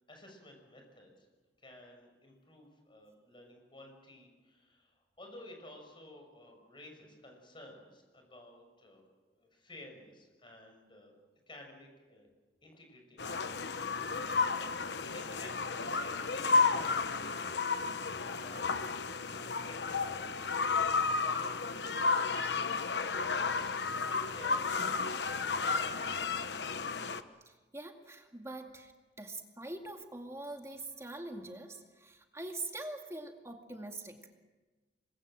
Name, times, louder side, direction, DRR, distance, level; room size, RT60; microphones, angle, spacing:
voice 1, 0.1-1.3 1.6-9.0 9.3-11.1 11.5-12.3 12.6-13.7 15.1-24.7 25.6-26.9, left 1 dB, 30° left, 3 dB, 6.3 m, -54 dB
sound 1, 13.2-27.2, left 4 dB, 75° left, 1.1 m, -32 dB
voice 2, 27.5-28.9 29.2-34.2, right 2 dB, 15° right, 3 dB, 2.2 m, -43 dB
26.0 x 21.5 x 7.6 m, 1.2 s
head